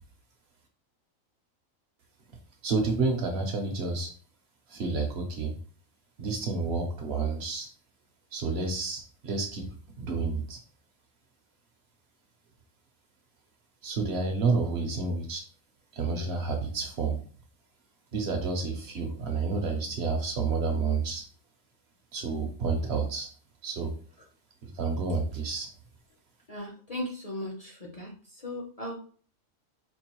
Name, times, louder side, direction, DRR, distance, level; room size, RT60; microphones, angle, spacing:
voice 1, 2.6-4.1 4.7-5.5 6.2-7.7 8.3-9.6 10.0-10.6 13.8-15.4 15.9-17.2 18.1-21.2 22.1-23.3 23.6-23.9 24.6-25.7, right 4 dB, 60° right, 3 dB, 0.9 m, -29 dB
voice 2, 26.5-27.5 28.0-28.1 28.4-29.0, left 1 dB, 35° left, -1 dB, 0.7 m, -36 dB
4.5 x 2.4 x 2.9 m, 0.43 s
omnidirectional pair, 1.4 m